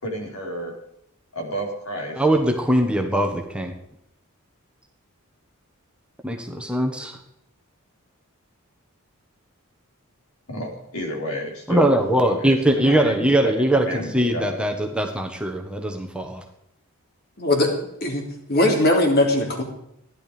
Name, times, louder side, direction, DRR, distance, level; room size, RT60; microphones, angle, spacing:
voice 1, 0.0-0.7 1.3-2.2 10.5-14.6, equal, 80° left, 0 dB, 4.5 m, -31 dB
voice 2, 2.2-3.7 6.2-7.2 11.7-16.4, right 1 dB, 5° right, 3 dB, 1.4 m, -21 dB
voice 3, 17.4-17.7 18.0-18.2 18.5-19.6, left 1 dB, 45° left, 2 dB, 3.3 m, -19 dB
15.5 x 11.0 x 5.2 m, 0.78 s
head